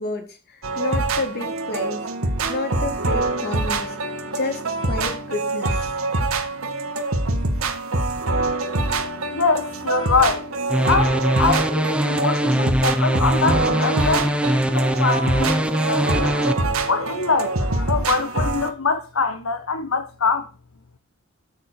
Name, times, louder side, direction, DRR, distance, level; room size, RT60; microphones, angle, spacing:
voice 1, 0.0-2.1 2.5-4.0 4.3-5.9, left 2 dB, 50° left, 3.6 m, -30 dB
sound 1, 0.6-18.7, right 2 dB, 80° right, 1.9 m, -25 dB
voice 2, 9.3-10.5 10.9-16.3 16.9-20.5, left 4 dB, 75° left, 1.2 m, -24 dB
sound 2, 10.7-16.5, equal, 5° right, 1.0 m, -22 dB
12.5 x 7.4 x 6.7 m
head